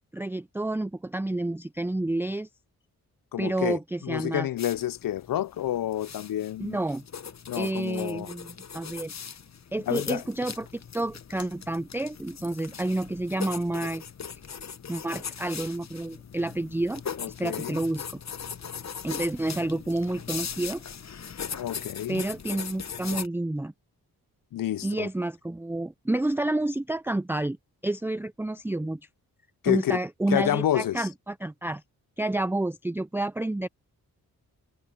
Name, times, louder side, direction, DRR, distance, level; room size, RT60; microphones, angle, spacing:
voice 1, 0.1-2.5 3.4-4.5 6.6-7.0 7.6-9.1 9.7-10.7 10.9-14.0 14.9-17.0 17.3-18.2 19.0-20.8 22.1-23.7 24.8-27.6 27.8-29.0 29.7-31.8 32.2-33.7, right 2 dB, 5° right, 0.5 m, -29 dB
voice 2, 3.3-6.8 7.5-8.3 9.9-10.2 17.2-17.8 21.6-22.2 24.5-25.1 29.6-30.0 30.3-31.1, left 12 dB, 65° left, 0.6 m, -29 dB
sound 1, 4.6-23.3, left 7 dB, 45° left, 1.1 m, -40 dB
cardioid pair, 55°, 37 cm